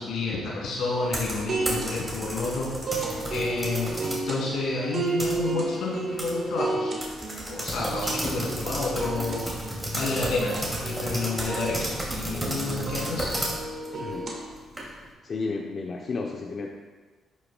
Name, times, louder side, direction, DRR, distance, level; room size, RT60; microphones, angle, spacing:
voice 1, 0.0-4.0 4.3-7.0 7.4-10.6 10.8-13.3, left 3 dB, 85° left, -4 dB, 2.3 m, -30 dB
sound 1, 0.9-14.5, right 3 dB, 50° right, 1.5 m, -33 dB
sound 2, 1.0-4.3 4.7-5.7 6.2-6.3 6.6-6.7 7.0-15.1, right 1 dB, 15° right, 2.3 m, -33 dB
voice 2, 13.9-14.3 15.2-16.7, left 3 dB, 45° left, 0 dB, 0.7 m, -32 dB
11.0 x 6.5 x 2.2 m, 1.3 s
cardioid pair, 90°, 0 cm